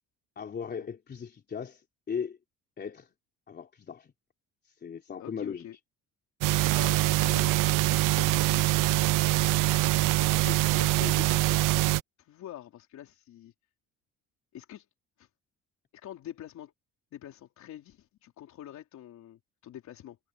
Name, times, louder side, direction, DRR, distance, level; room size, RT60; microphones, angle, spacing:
voice 1, 0.3-2.4 2.8-3.1 3.5-4.1 4.8-5.6, left 6 dB, 30° left, 3.4 m, -37 dB
voice 2, 5.2-5.8 6.7-8.7 10.2-11.9 12.2-13.5 14.5-14.9 15.2-15.3 15.9-16.7 17.1-20.2, left 11 dB, 60° left, 3.7 m, -45 dB
sound 1, 6.4-12.0, right 18 dB, 75° right, 0.5 m, -24 dB
cardioid pair, 160°, 33 cm